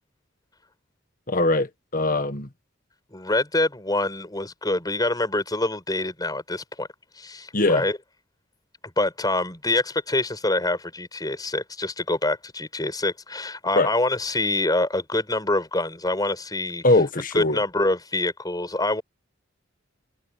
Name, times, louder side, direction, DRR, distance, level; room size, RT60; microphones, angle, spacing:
voice 1, 1.3-2.5 7.5-7.8 13.8-13.9 16.8-17.6, left 2 dB, 45° left, 1.6 m, -21 dB
voice 2, 3.1-6.9 7.2-8.0 9.0-16.8 17.3-19.0, left 2 dB, 20° left, 5.8 m, -25 dB
head